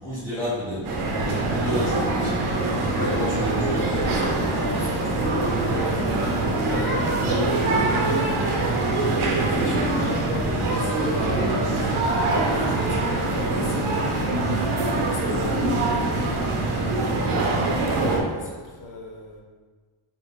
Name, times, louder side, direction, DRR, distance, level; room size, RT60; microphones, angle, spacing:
voice 1, 0.0-0.9 1.2-2.4 3.1-3.8, equal, 5° left, -13 dB, 1.1 m, -30 dB
sound 1, 0.8-18.2, right 2 dB, 85° right, 0.9 m, -24 dB
voice 2, 3.7-8.5 9.3-14.8 15.0-19.4, left 1 dB, 40° left, -1 dB, 0.8 m, -37 dB
sound 2, 5.5-10.5, equal, 15° right, 1.2 m, -39 dB
4.9 x 3.5 x 2.6 m, 1.4 s
wide cardioid pair, 175°, 49 cm